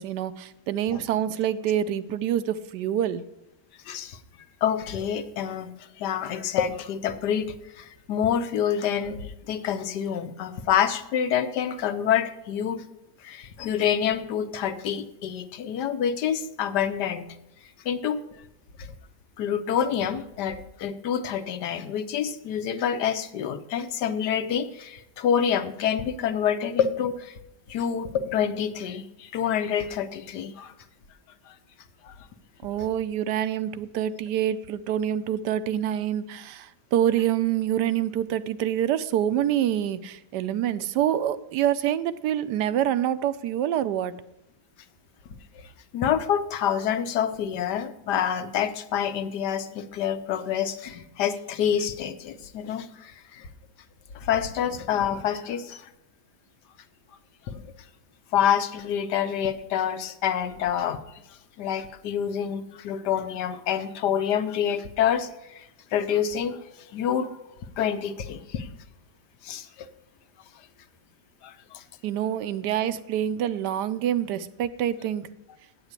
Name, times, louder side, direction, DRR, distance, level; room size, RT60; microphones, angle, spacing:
voice 1, 0.0-3.2 32.6-44.1 72.0-75.3, right 10 dB, 85° right, 14 dB, 1.2 m, -26 dB
voice 2, 3.8-4.2 4.6-5.7 6.0-12.8 13.2-17.3 17.8-18.2 18.8-18.9 19.4-27.3 27.7-30.7 31.5-31.6 32.0-32.1 45.5-53.5 54.1-55.9 57.5-57.7 58.3-61.0 61.6-66.6 66.9-67.4 67.8-68.7 69.4-69.7 71.4-71.8, left 8 dB, 80° left, 11 dB, 1.4 m, -27 dB
8.3 x 8.0 x 8.1 m, 0.88 s
omnidirectional pair, 1.8 m